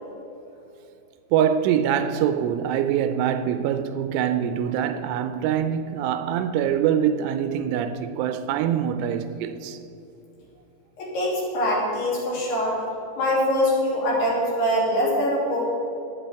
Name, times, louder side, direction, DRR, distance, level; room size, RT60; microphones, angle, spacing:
voice 1, 1.3-9.8, right 9 dB, 85° right, 3.0 m, -24 dB
voice 2, 11.0-12.8 13.2-15.6, equal, 60° left, 4.7 m, -23 dB
15.5 x 11.0 x 3.5 m
omnidirectional pair, 5.5 m